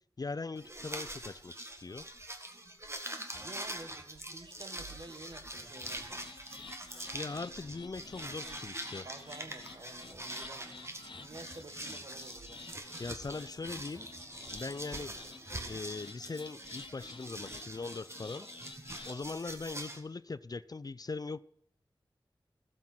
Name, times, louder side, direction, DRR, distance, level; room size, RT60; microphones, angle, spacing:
voice 1, 0.2-2.1 7.1-9.0 13.0-14.1 14.5-15.2 15.7-18.5 19.1-21.4, left 3 dB, 45° left, 0.5 m, -40 dB
sound 1, 0.6-20.0, right 1 dB, 30° right, 1.9 m, -44 dB
voice 2, 3.3-6.2 8.3-8.7 9.0-12.8, right 2 dB, 55° right, 1.5 m, -51 dB
sound 2, 5.7-19.2, left 4 dB, 70° left, 1.2 m, -52 dB
sound 3, 7.1-15.4, right 1 dB, 80° right, 5.3 m, -63 dB
14.5 x 7.5 x 5.7 m
wide cardioid pair, 55°, 9 cm